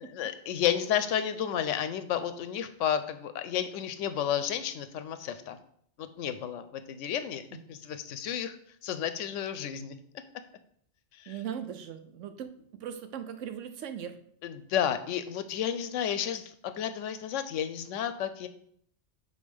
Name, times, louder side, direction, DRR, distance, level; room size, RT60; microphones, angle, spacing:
voice 1, 0.1-5.6 6.0-7.4 7.7-8.6 8.8-10.0 11.2-11.4 14.4-18.5, left 9 dB, 90° left, 10 dB, 0.9 m, -32 dB
voice 2, 11.3-12.5 12.8-14.1, right 8 dB, 90° right, 9 dB, 1.0 m, -39 dB
5.0 x 4.2 x 5.3 m, 0.64 s
omnidirectional pair, 1.2 m